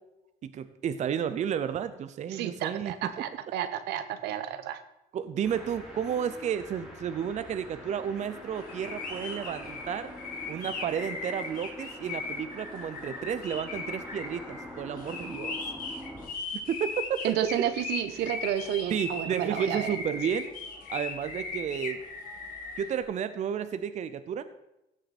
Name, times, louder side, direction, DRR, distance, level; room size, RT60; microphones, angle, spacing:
voice 1, 0.4-3.1 5.1-10.1 10.5-15.5 16.5-16.9 18.9-20.5 20.9-22.0 22.8-24.4, right 8 dB, 45° right, 12 dB, 0.6 m, -32 dB
voice 2, 2.3-4.8 17.2-19.9, right 11 dB, 80° right, 11 dB, 0.9 m, -31 dB
sound 1, 5.4-16.3, left 1 dB, ahead, 3.4 m, -44 dB
sound 2, 8.6-22.9, left 4 dB, 60° left, 2.8 m, -38 dB
15.5 x 6.5 x 4.2 m, 0.89 s
cardioid pair, 110°, 17 cm